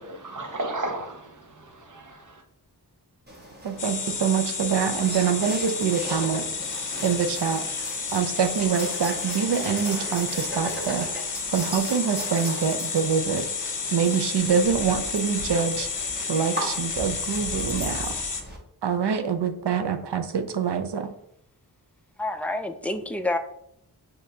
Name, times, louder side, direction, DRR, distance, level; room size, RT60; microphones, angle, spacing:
voice 1, 0.0-2.4, right 2 dB, 45° right, 4 dB, 0.9 m, -34 dB
sound 1, 3.3-18.6, equal, 25° right, 1.2 m, -38 dB
voice 2, 3.6-6.5 7.0-7.6 8.1-11.1 11.5-13.5 13.9-15.9 16.3-18.2 18.8-21.1, right 7 dB, 80° right, 8 dB, 0.6 m, -25 dB
sound 2, 3.8-18.4, left 5 dB, 50° left, 0.7 m, -31 dB
voice 3, 22.2-23.4, left 2 dB, 5° left, 6 dB, 0.4 m, -28 dB
6.4 x 2.9 x 2.7 m, 0.75 s
wide cardioid pair, 70°, 41 cm